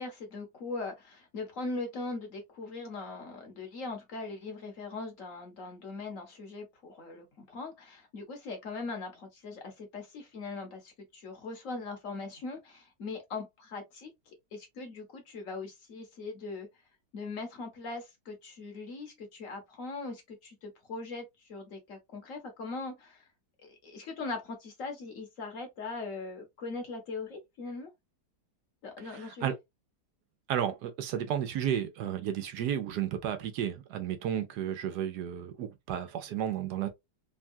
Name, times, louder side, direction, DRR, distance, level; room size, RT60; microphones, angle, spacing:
voice 1, 0.0-14.1 14.5-16.7 17.1-23.2 23.6-27.9 28.8-29.6, left 3 dB, 55° left, 1.2 m, -40 dB
voice 2, 29.1-29.5 30.5-36.9, right 9 dB, 80° right, 1.2 m, -32 dB
3.5 x 2.2 x 2.5 m
omnidirectional pair, 1.8 m